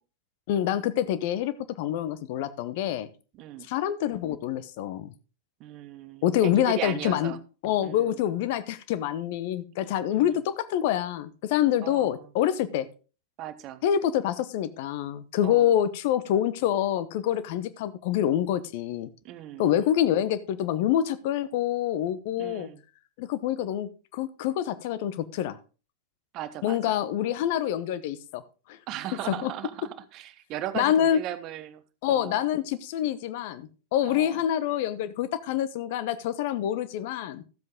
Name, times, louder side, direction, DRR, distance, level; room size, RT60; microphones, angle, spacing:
voice 1, 0.5-3.1 3.7-5.1 6.2-7.3 7.6-12.9 13.8-19.1 19.6-22.7 23.2-25.6 26.6-28.4 28.7-28.8 29.3-29.5 30.7-31.2 32.0-37.4, left 11 dB, 50° left, 14 dB, 0.9 m, -26 dB
voice 2, 3.4-3.7 5.6-7.4 7.8-8.1 10.1-10.4 11.8-12.2 13.4-13.8 15.4-15.7 19.2-19.7 22.4-22.8 26.3-27.0 28.9-31.8 32.1-32.4 34.0-34.4, right 13 dB, 40° right, 13 dB, 1.0 m, -37 dB
13.5 x 7.7 x 3.6 m, 0.34 s
figure-of-eight pair, 90°, 0 cm